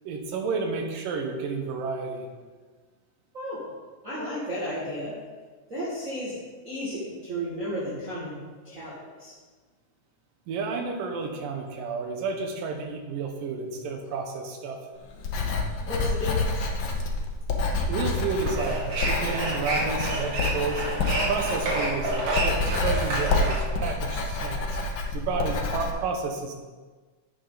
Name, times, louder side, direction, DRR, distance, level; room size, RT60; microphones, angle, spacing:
voice 1, 0.0-2.3 10.5-14.8 17.9-20.9 21.2-24.8 25.1-26.5, right 4 dB, 90° right, 4 dB, 2.9 m, -31 dB
voice 2, 4.0-5.1 5.7-6.3 6.6-8.4 8.6-9.3 15.9-16.6, equal, 25° right, -9 dB, 2.2 m, -33 dB
Writing, 15.1-25.9, left 3 dB, 75° left, 1.1 m, -28 dB
sound 1, 18.2-23.6, right 2 dB, 60° right, 3.3 m, -29 dB
11.0 x 8.3 x 4.1 m, 1.4 s
omnidirectional pair, 3.8 m